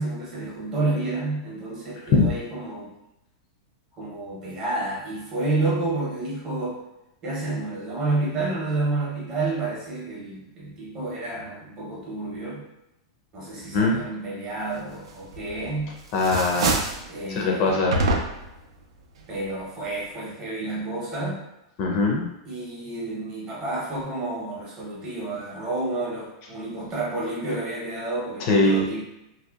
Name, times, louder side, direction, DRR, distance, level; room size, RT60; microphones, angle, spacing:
voice 1, 0.0-2.9 4.0-6.8 7.2-12.6 13.3-16.0 17.1-17.6 19.3-21.4 22.4-29.0, right 2 dB, 25° right, -4 dB, 0.7 m, -30 dB
voice 2, 13.5-14.0 16.1-16.8 17.4-18.0 21.8-22.3 28.5-28.8, left 3 dB, 35° left, -1 dB, 0.4 m, -21 dB
sound 1, 15.3-15.8 16.1-17.1 17.9-18.6, right 2 dB, 80° right, 0.4 m, -25 dB
2.6 x 2.0 x 2.3 m, 0.88 s
supercardioid pair, 165°, 3 cm